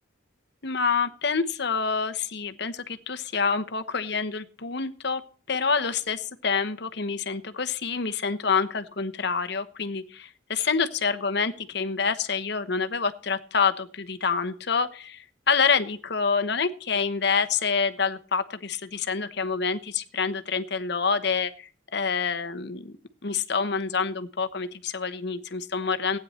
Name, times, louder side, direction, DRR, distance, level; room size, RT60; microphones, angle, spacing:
voice 1, 0.6-5.2 5.5-22.9 23.2-26.2, left 5 dB, 60° left, 10 dB, 1.1 m, -27 dB
16.0 x 9.6 x 4.3 m, 0.42 s
head